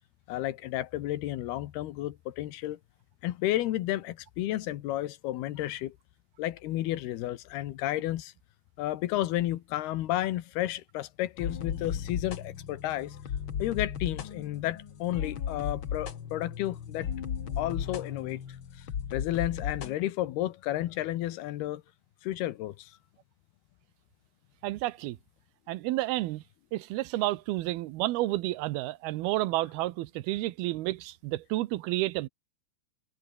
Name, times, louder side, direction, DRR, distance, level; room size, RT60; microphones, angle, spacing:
voice 1, 0.3-2.8 3.2-6.0 6.4-8.3 8.8-13.2 13.6-17.1 17.6-18.4 18.8-18.9 19.1-21.8 22.2-23.0, left 15 dB, 80° left, 3.2 m, -32 dB
sound 1, 11.4-19.9, left 8 dB, 50° left, 1.6 m, -36 dB
voice 2, 24.6-25.2 25.7-26.4 26.7-32.3, right 17 dB, 85° right, 2.7 m, -30 dB
omnidirectional pair, 4.5 m